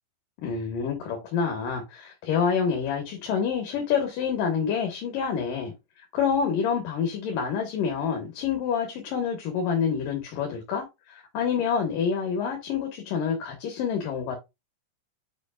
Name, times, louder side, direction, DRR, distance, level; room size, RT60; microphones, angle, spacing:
voice 1, 0.4-5.7 6.1-14.4, left 6 dB, 75° left, 3.2 m, -27 dB
8.2 x 5.6 x 2.4 m
omnidirectional pair, 3.9 m